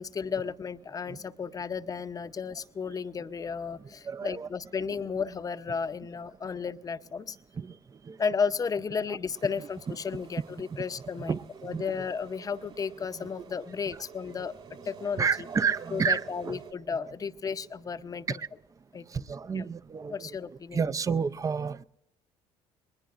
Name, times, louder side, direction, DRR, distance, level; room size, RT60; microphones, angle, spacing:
voice 1, 0.0-7.4 8.2-11.3 11.6-14.5 14.8-15.3 15.9-18.4 18.9-19.1 19.5-19.6 20.1-20.8, left 5 dB, 30° left, 12 dB, 0.7 m, -33 dB
voice 2, 4.1-4.5 4.9-5.0 7.6-7.7 8.1-8.2 9.6-10.0 11.2-12.1 13.2-13.3 15.2-16.6 17.1-17.2 18.3-18.5 19.1-20.3 20.7-21.8, right 6 dB, 25° right, 15 dB, 0.5 m, -31 dB
sound 1, 9.3-16.7, right 6 dB, 50° right, 2.7 m, -49 dB
20.5 x 20.5 x 2.5 m, 0.84 s
supercardioid pair, 80°, 12 cm